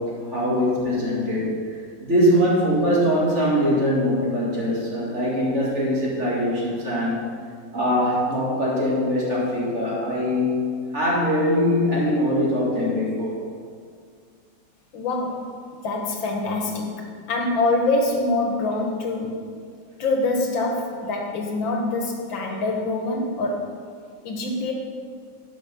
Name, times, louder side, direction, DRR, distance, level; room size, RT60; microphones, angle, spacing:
voice 1, 0.0-1.5 2.0-7.2 7.7-10.5 10.9-13.4, equal, 35° right, -5 dB, 2.4 m, -22 dB
voice 2, 14.9-17.0 17.3-19.4 20.0-23.8 24.2-24.7, left 2 dB, 85° left, 1 dB, 2.0 m, -25 dB
10.5 x 6.3 x 5.3 m, 2.1 s
omnidirectional pair, 2.1 m